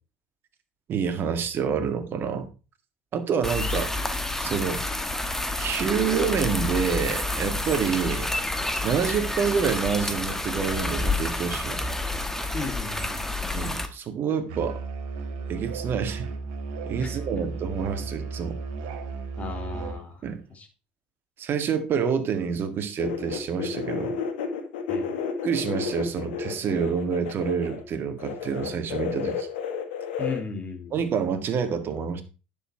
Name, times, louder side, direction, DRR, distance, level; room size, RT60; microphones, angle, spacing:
voice 1, 0.9-2.5 3.1-3.9 4.4-4.8 5.6-8.3 8.8-11.8 13.5-14.8 15.5-16.3 16.9-18.6 20.2-20.4 21.4-24.2 25.4-29.5 30.9-32.2, right 6 dB, 45° right, 8 dB, 1.9 m, -27 dB
sound 1, 3.4-13.9, left 2 dB, 5° left, 1.6 m, -29 dB
voice 2, 12.5-13.3 17.0-17.1 19.4-20.2 20.5-20.7 24.9-25.1 30.2-30.9, left 4 dB, 25° left, 5 dB, 2.9 m, -35 dB
Musical instrument, 14.5-20.1, right 4 dB, 70° right, 1.8 m, -34 dB
sound 2, 23.0-27.8 28.2-30.4, left 6 dB, 75° left, 1.7 m, -31 dB
10.0 x 7.2 x 4.5 m, 0.32 s
hypercardioid pair, 75°, 5 cm